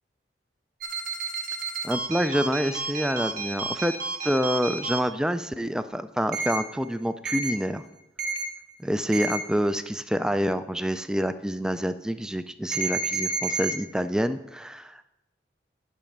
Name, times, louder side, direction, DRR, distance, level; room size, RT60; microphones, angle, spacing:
sound 1, 0.8-5.0 6.3-6.6 7.2-7.5 8.2-8.4 9.1-9.4 12.7-13.7, right 4 dB, 50° right, 1.1 m, -30 dB
voice 1, 1.8-3.9 4.2-7.8 8.8-15.1, equal, 5° right, 11 dB, 0.3 m, -27 dB
10.5 x 5.8 x 5.3 m, 0.94 s
head